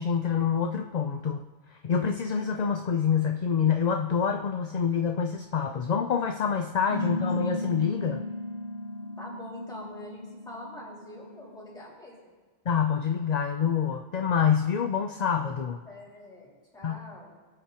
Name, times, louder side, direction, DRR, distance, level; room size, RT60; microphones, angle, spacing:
voice 1, 0.0-1.5 1.7-8.2 12.7-15.8 16.8-17.0, left 7 dB, 50° left, 5 dB, 0.6 m, -26 dB
sound 1, 6.9-11.8, left 1 dB, 65° left, 1.3 m, -35 dB
voice 2, 9.2-12.3 15.8-17.3, left 1 dB, 5° left, -6 dB, 4.6 m, -44 dB
23.0 x 8.5 x 2.9 m, 1.4 s
omnidirectional pair, 1.1 m